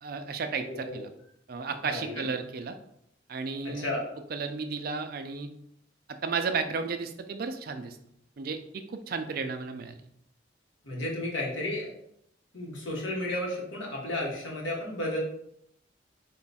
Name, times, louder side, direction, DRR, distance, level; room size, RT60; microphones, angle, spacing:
voice 1, 0.0-1.1 1.5-2.8 3.3-3.9 4.3-5.5 6.2-8.0 8.4-10.0, right 4 dB, 50° right, 8 dB, 0.4 m, -33 dB
voice 2, 0.6-1.0 1.8-2.3 3.6-4.0 10.8-11.9 12.5-15.2, left 1 dB, 85° left, -3 dB, 1.3 m, -33 dB
3.9 x 2.3 x 4.1 m, 0.74 s
head